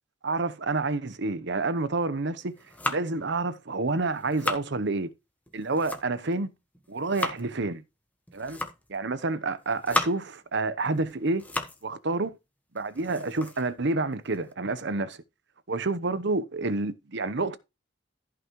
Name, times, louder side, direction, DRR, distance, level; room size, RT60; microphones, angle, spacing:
voice 1, 0.2-2.6 2.9-5.1 5.5-6.5 6.9-7.8 8.3-8.6 8.9-11.5 11.8-12.3 12.7-15.2 15.7-17.6, right 3 dB, 65° right, 0.9 m, -28 dB
sound 1, 2.4-3.3 3.9-4.7 5.5-6.3 6.7-7.5 8.3-8.9 9.5-10.4 10.8-11.9 12.2-12.3 12.8-14.5, left 1 dB, 10° left, 1.4 m, -34 dB
14.5 x 5.9 x 3.1 m
head